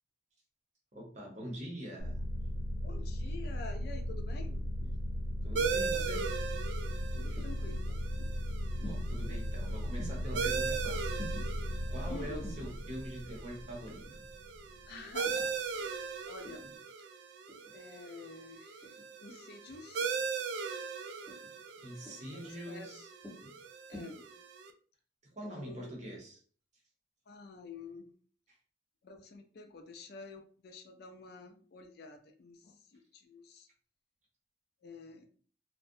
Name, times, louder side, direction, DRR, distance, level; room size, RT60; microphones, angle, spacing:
voice 1, 0.9-2.2 3.2-3.3 5.4-6.3 7.3-7.4 8.8-11.3 11.9-14.2 21.8-23.1 25.3-26.4, right 1 dB, 40° right, -1 dB, 0.7 m, -44 dB
sound 1, 2.0-15.2, left 1 dB, 90° left, 0.8 m, -37 dB
voice 2, 2.8-4.6 7.1-7.8 8.2-8.3 12.1-12.5 14.9-16.0 16.3-16.8 17.7-18.9 19.2-20.1 22.3-22.9 23.9-24.2 25.5-25.9 27.3-28.1 29.0-33.7 34.8-35.3, left 3 dB, 55° left, 5 dB, 0.4 m, -49 dB
sound 2, 4.5-4.9 5.9-6.3 7.4-7.8 8.8-9.3 10.0-10.4 11.2-11.5 12.4-12.8 13.9-14.2 15.2-15.5 16.4-16.8 17.5-17.8 18.8-19.1 20.0-20.3 21.3-21.6 22.0-22.4 23.2-23.5 23.9-24.0, equal, ahead, 0.7 m, -49 dB
sound 3, 5.6-24.7, right 5 dB, 70° right, 0.3 m, -39 dB
2.5 x 2.1 x 2.6 m, 0.44 s
head